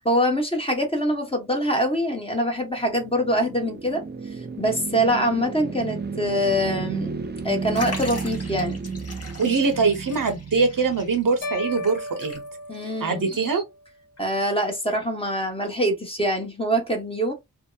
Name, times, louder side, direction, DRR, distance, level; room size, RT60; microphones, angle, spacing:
voice 1, 0.0-7.1 7.4-8.8 12.7-13.2 14.2-17.3, equal, 15° left, 0.9 m, -24 dB
sound 1, 2.5-11.7, right 4 dB, 30° right, 0.4 m, -33 dB
Liquid, 7.7-12.8 13.1-13.2 14.2-14.3, left 2 dB, 40° left, 1.0 m, -40 dB
voice 2, 9.4-12.4 13.0-13.6, right 4 dB, 65° right, 0.8 m, -23 dB
sound 2, 11.4-13.7, left 1 dB, 75° left, 0.5 m, -34 dB
2.7 x 2.1 x 2.3 m
cardioid pair, 50°, 36 cm